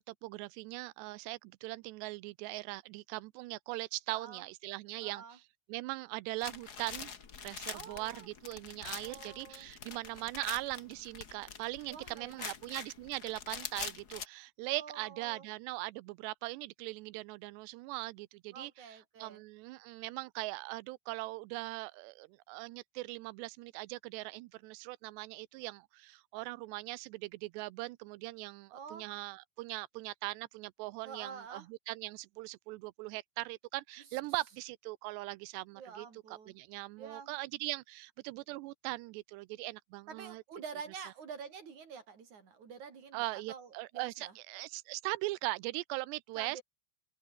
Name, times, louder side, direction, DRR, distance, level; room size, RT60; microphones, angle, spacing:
voice 1, 0.0-5.4 5.7-7.1 7.4-40.4 43.1-46.6, right 21 dB, 90° right, 2.8 m, -40 dB
voice 2, 4.1-4.4 5.0-5.4 7.7-8.3 9.0-9.7 11.9-12.5 14.7-15.5 18.5-19.4 28.7-29.1 31.0-31.7 35.8-36.6 37.0-37.3 40.1-44.3 46.4-46.6, right 6 dB, 45° right, 5.3 m, -48 dB
sound 1, 6.4-14.3, left 6 dB, 55° left, 1.0 m, -45 dB
omnidirectional pair, 4.8 m